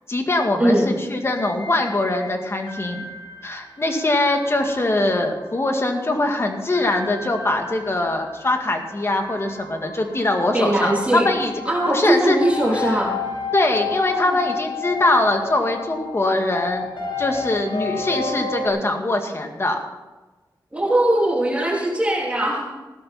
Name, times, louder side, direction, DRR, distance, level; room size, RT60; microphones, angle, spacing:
voice 1, 0.1-3.0 3.4-11.5 11.9-12.4 12.7-12.9 13.5-16.9 17.2-19.8, left 2 dB, 35° left, 4 dB, 2.1 m, -22 dB
sound 1, 1.3-18.7, left 5 dB, 80° left, 2.5 m, -33 dB
voice 2, 10.5-11.3 11.7-13.1 13.9-14.4 20.7-22.7, right 1 dB, 15° right, -3 dB, 3.4 m, -20 dB
16.0 x 12.5 x 4.4 m, 1.2 s
wide cardioid pair, 95°, 8 cm